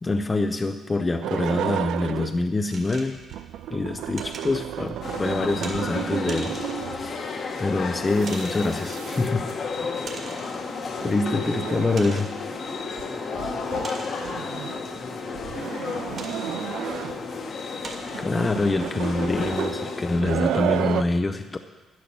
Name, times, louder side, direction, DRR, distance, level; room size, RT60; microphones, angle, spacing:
voice 1, 0.0-3.2 3.7-6.6 6.8-9.5 11.0-12.6 18.2-21.6, left 3 dB, 25° left, 7 dB, 0.6 m, -25 dB
sound 1, 1.2-2.5 3.1-7.2 8.0-9.5 10.8-12.4 13.0-13.1 13.3-13.9 14.2-14.8 15.3-17.3 17.9-21.0, right 12 dB, 85° right, 0.3 m, -32 dB
sound 2, 2.7-3.4 4.2-4.5 5.6-5.8 6.3-6.8 7.6-7.7 8.3-8.9 10.1-10.7 11.2-11.3 12.0-12.4 13.8-14.4 16.2-16.5 17.2-17.3 17.8-18.2, right 4 dB, 55° right, 2.0 m, -40 dB
sound 3, 5.0-20.2, left 4 dB, 55° left, 1.5 m, -32 dB
voice 2, 10.8-11.5 13.0-15.6 16.0-17.3, left 2 dB, 75° left, -2 dB, 2.9 m, -44 dB
11.0 x 10.5 x 6.1 m, 1.3 s
cardioid pair, 90°, 0 cm